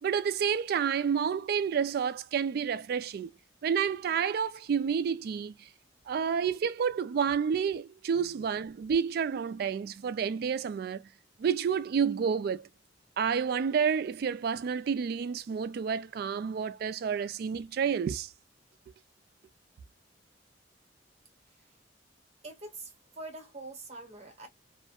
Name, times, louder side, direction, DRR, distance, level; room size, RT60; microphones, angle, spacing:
voice 1, 0.0-3.3 3.6-5.7 6.1-11.0 11.4-12.7 13.2-18.3, right 7 dB, 55° right, 0.3 m, -29 dB
voice 2, 8.1-8.5 21.6-21.7 22.4-24.5, right 2 dB, 40° right, 0.9 m, -45 dB
2.3 x 2.1 x 2.7 m
head